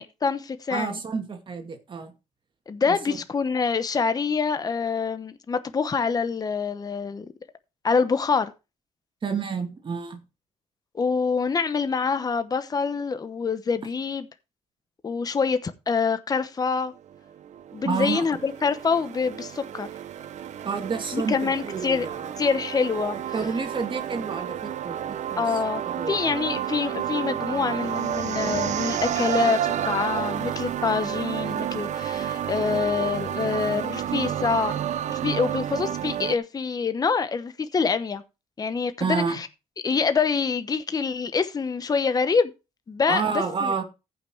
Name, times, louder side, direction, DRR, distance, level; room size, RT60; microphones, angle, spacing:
voice 1, 0.0-1.0 2.7-7.3 7.8-8.5 10.9-14.3 15.0-16.9 17.7-19.9 21.1-22.1 22.4-23.2 25.4-34.8 35.1-38.2 38.6-39.5 39.8-42.5 42.9-43.2 43.6-43.7, left 5 dB, 30° left, 1.0 m, -26 dB
voice 2, 0.7-2.1 2.9-3.2 9.2-10.2 17.8-18.3 20.6-22.3 23.3-25.6 25.9-26.4 39.0-39.4 43.1-43.8, right 5 dB, 40° right, 2.3 m, -29 dB
sound 1, 17.1-36.4, right 10 dB, 70° right, 0.8 m, -30 dB
15.0 x 5.9 x 4.6 m
cardioid pair, 105°, 13 cm